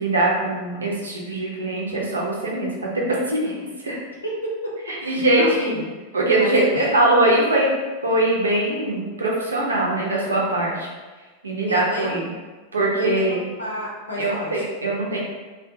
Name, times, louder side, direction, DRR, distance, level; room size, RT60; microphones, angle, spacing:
voice 1, 0.0-3.5 3.8-4.0 4.9-5.8 6.1-7.7 8.0-10.9 11.4-12.3 12.7-13.5 14.2-15.2, right 1 dB, 75° right, -3 dB, 0.6 m, -22 dB
voice 2, 4.2-5.9 6.4-7.0 11.7-12.2 13.0-14.8, equal, 80° left, -4 dB, 0.7 m, -31 dB
2.5 x 2.2 x 2.6 m, 1.3 s
figure-of-eight pair, 90°, 0 cm